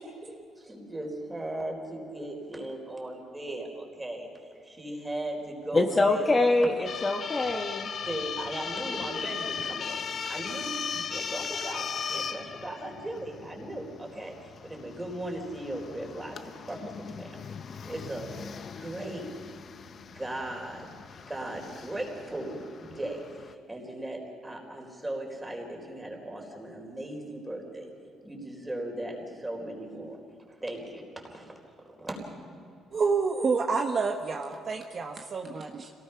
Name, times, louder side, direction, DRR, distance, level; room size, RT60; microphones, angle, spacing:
voice 1, 0.2-4.3 4.6-6.4 8.1-17.3 17.8-18.4 18.8-19.3 19.9-20.9 21.3-27.9 28.2-30.2 30.5-31.6 32.0-32.6, right 1 dB, 10° right, 1 dB, 4.2 m, -38 dB
voice 2, 5.7-7.9, left 2 dB, 20° left, 3 dB, 1.2 m, -24 dB
sound 1, 6.8-23.5, left 6 dB, 45° left, 0.8 m, -38 dB
voice 3, 32.9-35.9, right 4 dB, 40° right, 3 dB, 1.2 m, -28 dB
27.0 x 18.5 x 5.8 m, 2.5 s
cardioid pair, 135°, 0 cm